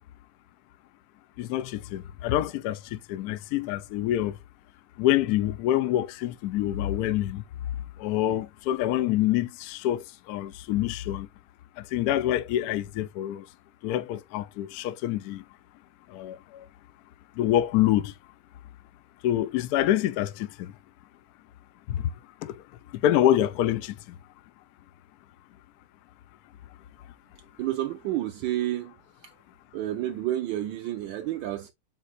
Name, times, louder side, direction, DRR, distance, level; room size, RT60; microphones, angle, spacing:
voice 1, 1.4-4.4 5.0-7.4 8.0-11.3 11.8-13.5 13.8-15.4 16.1-16.7 17.4-18.1 19.2-20.7 21.9-22.1 22.4-24.2, left 12 dB, 85° left, 0.8 m, -26 dB
voice 2, 27.6-29.0 29.7-31.7, right 13 dB, 75° right, 1.2 m, -30 dB
7.5 x 2.6 x 2.5 m
omnidirectional pair, 2.2 m